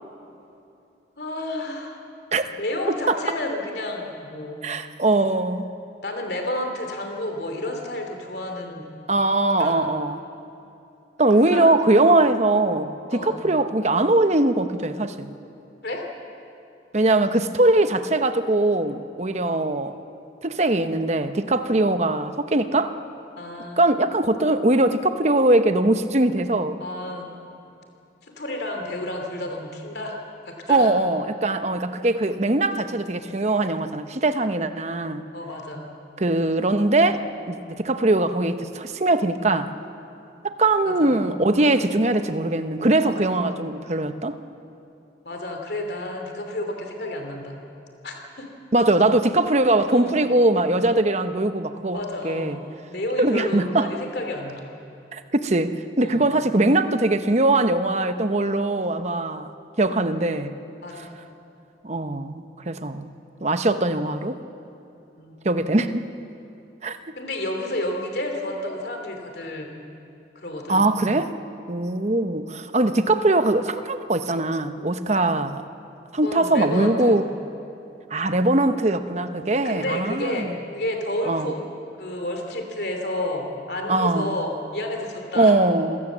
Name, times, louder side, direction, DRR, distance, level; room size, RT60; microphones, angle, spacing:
voice 1, 1.2-2.0 2.5-4.6 6.0-8.9 9.6-9.9 11.4-11.7 13.1-13.5 15.8-16.1 23.4-23.8 26.8-27.3 28.2-30.9 35.3-35.9 40.8-41.3 43.0-43.4 45.2-47.6 48.0-48.5 49.9-50.2 51.9-54.7 56.0-56.3 60.8-61.2 65.2-65.6 67.2-69.7 70.3-70.9 76.2-77.2 79.6-81.7 82.0-85.5, left 1 dB, 60° left, 3 dB, 2.9 m, -31 dB
voice 2, 4.6-5.7 9.1-10.2 11.2-15.3 16.9-20.0 20.4-22.9 23.8-26.8 30.7-35.2 36.2-37.2 37.5-39.7 40.4-44.4 48.7-52.0 52.2-52.6 53.2-53.9 55.1-59.5 59.8-60.5 61.8-63.1 63.4-64.4 65.4-66.1 66.8-67.0 70.7-71.3 71.7-75.6 76.1-77.2 78.1-80.5 81.3-81.5 83.9-84.3 85.3-86.0, right 2 dB, 40° right, 9 dB, 0.9 m, -21 dB
27.5 x 17.5 x 7.4 m, 2.8 s
head